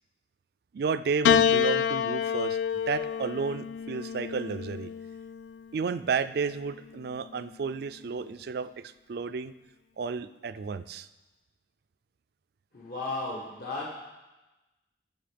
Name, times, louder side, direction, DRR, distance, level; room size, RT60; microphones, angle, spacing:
voice 1, 0.7-4.9 5.7-9.5 10.0-11.1, right 5 dB, 60° right, 14 dB, 0.4 m, -32 dB
Piano, 1.2-5.7 6.8-7.5, left 8 dB, 80° left, 0.3 m, -28 dB
voice 2, 12.7-13.9, left 2 dB, 60° left, -4 dB, 1.6 m, -34 dB
14.0 x 5.6 x 5.1 m, 1.1 s
head